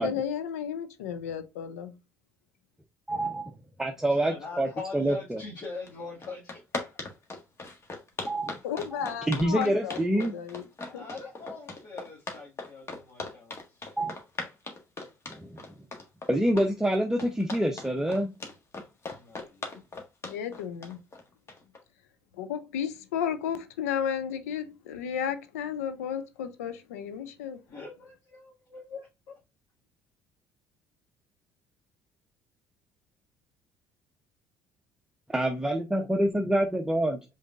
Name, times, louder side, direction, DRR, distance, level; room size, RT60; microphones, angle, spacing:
voice 1, 0.0-1.9 8.6-10.7 10.9-11.1 20.2-21.0 22.3-27.6, left 8 dB, 85° left, 0.5 m, -33 dB
voice 2, 3.1-3.5 3.8-5.4 8.3-8.6 8.9-10.3 14.0-14.1 15.3-15.6 16.3-18.3 35.3-37.2, right 1 dB, 5° right, 0.8 m, -27 dB
voice 3, 4.2-6.8 10.9-13.6 19.1-19.7 27.7-29.4, left 4 dB, 55° left, 2.0 m, -42 dB
sound 1, 5.9-6.0 6.2-21.8, left 3 dB, 35° left, 1.5 m, -38 dB
5.1 x 3.9 x 2.5 m
hypercardioid pair, 60°, 8 cm